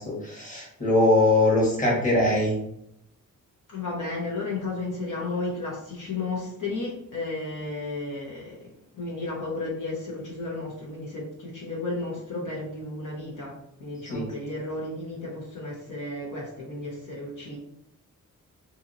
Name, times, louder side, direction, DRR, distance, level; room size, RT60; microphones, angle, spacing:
voice 1, 0.0-2.5 14.1-14.2, left 2 dB, 25° left, -4 dB, 1.3 m, -22 dB
voice 2, 3.7-13.5 13.8-17.6, left 2 dB, 65° left, -5 dB, 1.1 m, -33 dB
2.8 x 2.7 x 2.6 m, 0.76 s
cardioid pair, 80°, 33 cm